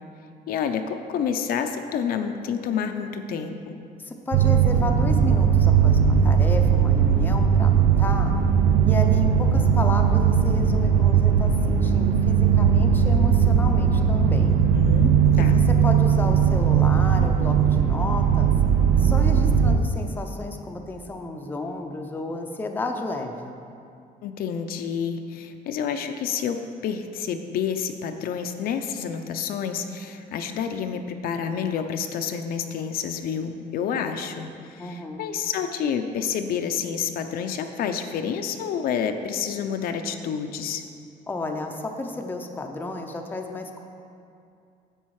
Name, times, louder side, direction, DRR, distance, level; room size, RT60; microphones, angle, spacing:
voice 1, 0.5-3.7 14.7-15.6 24.2-40.8, left 7 dB, 70° left, 6 dB, 0.7 m, -29 dB
voice 2, 4.0-8.3 8.8-14.6 15.3-18.5 19.0-23.6 34.8-35.3 41.3-43.8, left 2 dB, 10° left, 3 dB, 0.6 m, -32 dB
sound 1, 4.3-19.8, right 7 dB, 55° right, 0.6 m, -19 dB
10.0 x 7.9 x 4.8 m, 2.4 s
cardioid pair, 165°, 16 cm